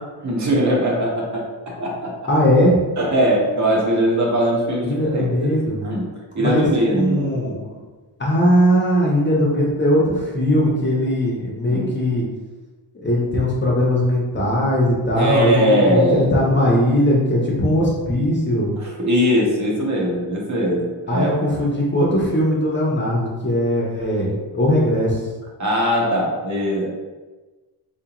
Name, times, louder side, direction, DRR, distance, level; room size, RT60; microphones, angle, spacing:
voice 1, 0.2-2.1 3.0-5.2 5.8-6.1 6.3-7.3 11.7-11.9 15.2-16.3 18.8-21.3 25.6-26.9, equal, 40° right, -3 dB, 0.9 m, -20 dB
voice 2, 2.3-2.8 4.8-5.8 6.4-6.7 6.9-7.6 8.2-12.3 13.0-18.7 21.1-25.2, equal, 25° left, -4 dB, 0.6 m, -19 dB
3.8 x 2.4 x 2.8 m, 1.2 s
cardioid pair, 135°, 45 cm